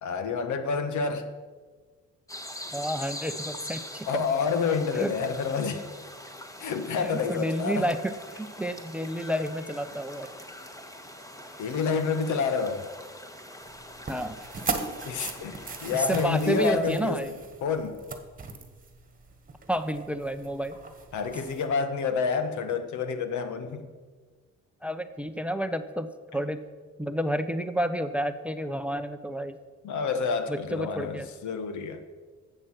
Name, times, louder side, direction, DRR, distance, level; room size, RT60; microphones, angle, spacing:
voice 1, 0.0-1.3 4.1-5.8 6.6-7.9 11.6-12.8 14.7-17.3 17.6-18.0 21.1-23.9 29.8-32.0, left 5 dB, 75° left, 10 dB, 1.2 m, -28 dB
sound 1, 2.3-16.8, left 1 dB, 10° left, 1.4 m, -43 dB
voice 2, 2.7-4.1 4.9-5.1 7.0-10.3 14.1-14.4 15.9-17.3 19.7-20.8 24.8-26.6 27.0-29.6 30.5-31.3, equal, 5° right, 11 dB, 0.6 m, -30 dB
sound 2, 13.6-21.6, right 4 dB, 30° right, 1.6 m, -39 dB
12.5 x 8.0 x 5.9 m, 1.4 s
cardioid pair, 90°, 30 cm